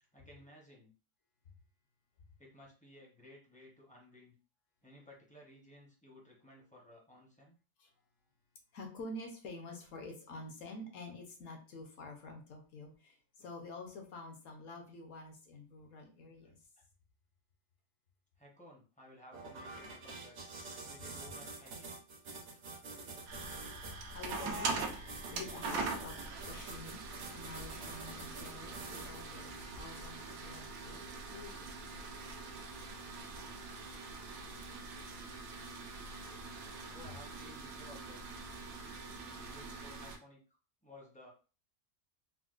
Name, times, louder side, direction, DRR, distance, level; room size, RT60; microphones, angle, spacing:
voice 1, 0.1-0.9 2.4-4.3 4.8-7.6 16.4-16.5 18.4-20.4 20.8-22.0 36.8-38.4 39.3-40.4 40.8-41.3, left 1 dB, 10° left, -2 dB, 0.5 m, -57 dB
voice 2, 8.7-16.6 24.1-24.7 24.9-27.0 27.3-31.7, left 2 dB, 70° left, 3 dB, 1.2 m, -48 dB
sound 1, 19.3-29.3, right 3 dB, 55° right, 0.8 m, -47 dB
sound 2, 23.3-40.2, right 3 dB, 80° right, 1.1 m, -43 dB
4.0 x 2.2 x 2.4 m, 0.35 s
omnidirectional pair, 1.5 m